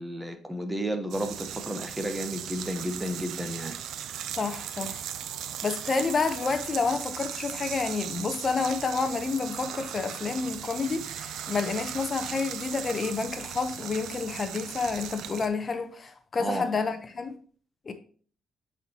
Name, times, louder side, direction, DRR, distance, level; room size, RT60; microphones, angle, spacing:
voice 1, 0.0-3.8 16.4-16.7, equal, 10° right, 0.9 m, -32 dB
sound 1, 1.1-15.5, right 10 dB, 80° right, 0.5 m, -38 dB
voice 2, 4.3-5.0 5.5-17.3 17.9-18.0, left 4 dB, 40° left, 0.7 m, -29 dB
8.0 x 4.4 x 2.8 m
cardioid pair, 90°, 0 cm